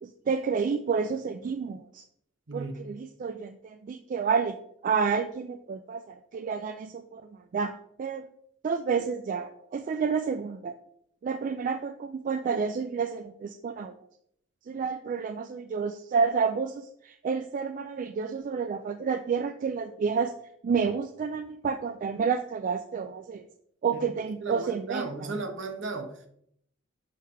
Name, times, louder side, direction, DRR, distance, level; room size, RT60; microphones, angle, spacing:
voice 1, 0.0-2.0 2.5-4.5 4.8-7.2 7.5-8.3 8.6-10.8 11.2-13.9 14.7-20.3 20.6-23.5 23.8-25.3, right 5 dB, 40° right, 8 dB, 0.3 m, -30 dB
voice 2, 24.4-26.2, right 3 dB, 65° right, 5 dB, 1.1 m, -35 dB
6.5 x 3.4 x 5.6 m, 0.70 s
head